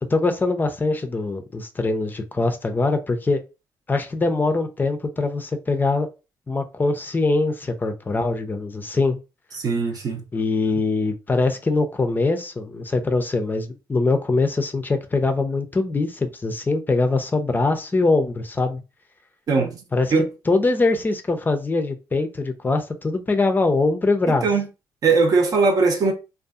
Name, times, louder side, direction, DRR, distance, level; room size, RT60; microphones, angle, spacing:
voice 1, 0.1-3.4 3.9-6.1 6.5-9.2 10.3-18.8 19.9-20.1 20.5-24.5, left 3 dB, 25° left, 0.4 m, -22 dB
voice 2, 9.6-10.2 19.5-19.8 20.1-20.3 24.4-24.7 25.0-26.1, right 4 dB, 55° right, 0.7 m, -19 dB
2.5 x 2.3 x 2.3 m
supercardioid pair, 70°, 8 cm